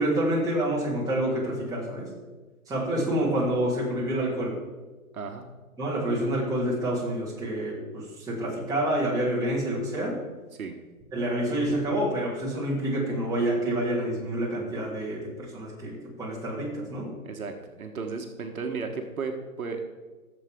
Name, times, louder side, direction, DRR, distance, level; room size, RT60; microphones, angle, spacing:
voice 1, 0.0-2.1 2.7-4.5 5.8-10.1 11.1-17.1, right 1 dB, 10° right, -7 dB, 3.2 m, -28 dB
voice 2, 5.1-5.4 10.5-10.7 17.2-19.8, right 4 dB, 70° right, 4 dB, 1.4 m, -34 dB
16.0 x 7.4 x 3.7 m, 1.3 s
hypercardioid pair, 140°, 44 cm